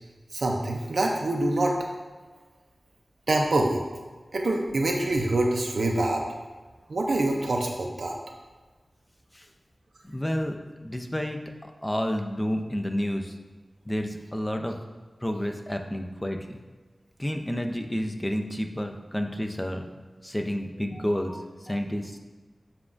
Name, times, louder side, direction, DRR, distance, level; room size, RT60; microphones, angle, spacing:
voice 1, 0.3-1.8 3.3-3.8 4.3-6.3 6.9-8.2, right 2 dB, 75° right, 0 dB, 0.4 m, -25 dB
voice 2, 10.1-13.3 13.9-14.8 15.2-16.6 17.2-19.8 20.2-22.2, equal, 15° left, 4 dB, 0.4 m, -30 dB
6.9 x 2.3 x 2.5 m, 1.3 s
wide cardioid pair, 65°, 0 cm